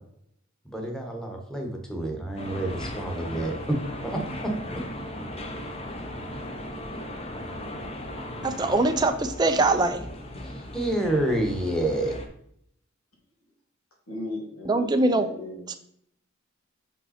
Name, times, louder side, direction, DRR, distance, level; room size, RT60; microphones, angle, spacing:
voice 1, 0.6-3.8 4.0-4.8 10.4-12.2, right 1 dB, 5° left, 1 dB, 1.2 m, -29 dB
sound 1, 2.4-12.3, left 1 dB, 25° left, 0.8 m, -37 dB
voice 2, 8.4-10.0 14.7-15.3 15.7-15.8, right 2 dB, 20° right, 7 dB, 0.4 m, -22 dB
voice 3, 14.1-15.8, left 2 dB, 85° left, -1 dB, 2.5 m, -36 dB
6.1 x 5.4 x 4.2 m, 0.70 s
head